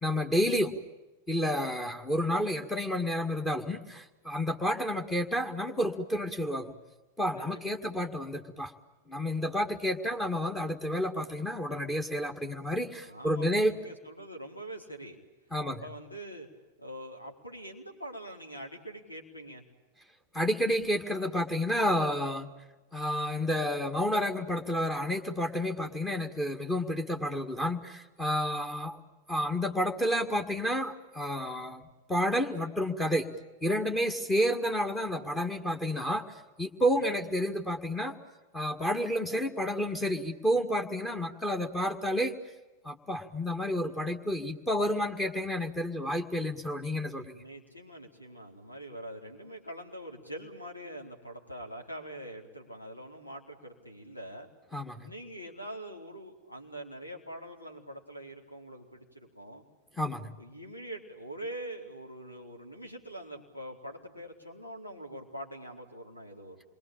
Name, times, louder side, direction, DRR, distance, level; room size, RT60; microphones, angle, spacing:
voice 1, 0.0-0.8 1.3-6.7 7.2-8.7 9.1-13.7 15.5-15.8 20.3-22.5 22.9-29.0 29.3-31.8 32.1-33.3 33.6-38.1 38.5-42.3 42.8-47.3 54.7-55.1 60.0-60.3, equal, 10° left, 1 dB, 2.0 m, -30 dB
voice 2, 7.3-8.1 13.0-15.2 15.6-16.5 16.8-19.6 37.0-37.2 47.3-54.5 55.0-59.6 60.4-66.6, right 1 dB, 85° left, 1 dB, 4.3 m, -44 dB
28.0 x 23.0 x 8.9 m, 1.1 s
figure-of-eight pair, 90°, 0 cm